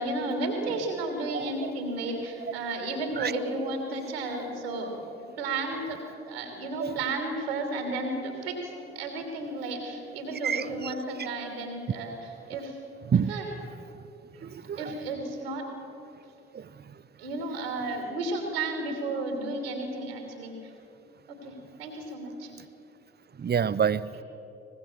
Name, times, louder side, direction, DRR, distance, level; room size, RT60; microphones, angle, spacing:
voice 1, 0.0-5.1 5.4-12.2 12.5-12.7 13.3-13.4 14.8-15.7 17.2-20.6 21.4-21.5 21.8-22.5, right 2 dB, 85° right, 3 dB, 2.8 m, -33 dB
voice 2, 1.3-1.7 3.2-3.3 6.8-6.9 10.4-10.9 13.1-13.3 14.4-14.9 16.5-16.7 23.4-24.1, right 7 dB, 35° right, 17 dB, 0.8 m, -28 dB
24.0 x 20.5 x 7.1 m, 2.8 s
figure-of-eight pair, 45°, 29 cm